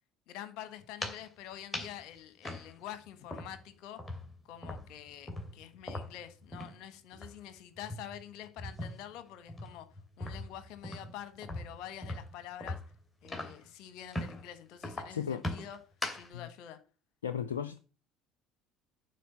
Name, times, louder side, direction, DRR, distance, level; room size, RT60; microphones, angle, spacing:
voice 1, 0.3-4.0 4.4-9.9 10.2-12.8 13.2-15.8 16.1-16.8, left 11 dB, 65° left, 1.4 m, -47 dB
sound 1, 0.8-1.3 1.7-2.0 2.4-3.7 4.0-6.8 7.1-7.3 7.7-9.1 9.5-13.7 14.1-14.4 14.8-16.3, left 1 dB, 20° left, 2.8 m, -40 dB
voice 2, 15.1-15.4 16.3-16.5 17.2-17.8, left 8 dB, 90° left, 0.4 m, -35 dB
9.3 x 4.6 x 7.1 m
hypercardioid pair, 65°, 0 cm